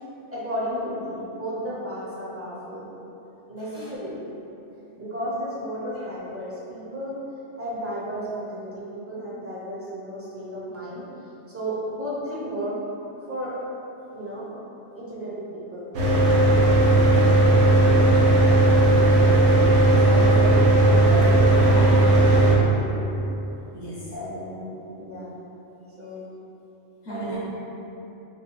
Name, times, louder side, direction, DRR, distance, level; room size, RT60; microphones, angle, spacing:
voice 1, 0.3-2.9 3.5-4.2 5.0-7.1 7.6-11.0 11.5-12.7 13.3-13.5 14.1-14.5 14.9-15.9 19.9-20.5 20.8-23.0 24.1-25.3 26.0-26.2 27.1-27.4, equal, 15° right, -8 dB, 0.6 m, -33 dB
voice 2, 3.6-3.9 5.9-6.1 20.1-20.3 21.6-22.0 23.7-24.1 27.0-27.4, right 1 dB, 70° left, -8 dB, 1.0 m, -36 dB
Mechanical fan, 15.9-22.6, right 2 dB, 80° right, 1.0 m, -16 dB
3.5 x 2.3 x 4.1 m, 3.0 s
omnidirectional pair, 1.2 m